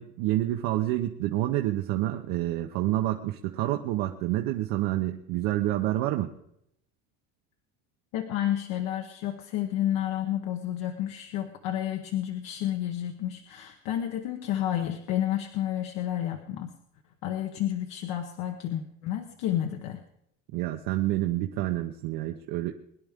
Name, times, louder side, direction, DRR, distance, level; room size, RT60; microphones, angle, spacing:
voice 1, 0.0-6.3 20.5-22.7, right 15 dB, 80° right, 4 dB, 1.0 m, -28 dB
voice 2, 8.1-16.7 17.2-20.0, left 11 dB, 80° left, 4 dB, 1.2 m, -30 dB
22.5 x 10.5 x 3.7 m, 0.75 s
cardioid pair, 160°, 34 cm